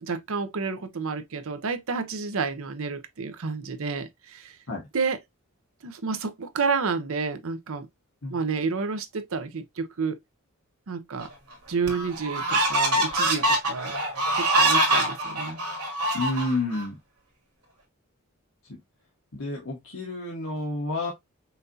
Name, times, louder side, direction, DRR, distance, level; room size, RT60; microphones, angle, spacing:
voice 1, 0.0-4.6 4.9-5.2 5.8-7.9 8.3-10.2 10.9-11.3 11.7-13.9 14.4-15.6, right 5 dB, 65° right, 0.7 m, -30 dB
sound 1, 11.2-11.3 11.9-16.8, right 1 dB, 90° right, 2.1 m, -24 dB
voice 2, 16.1-17.0 18.7-18.8 19.3-21.1, left 2 dB, 65° left, 1.2 m, -29 dB
5.7 x 2.7 x 2.6 m
head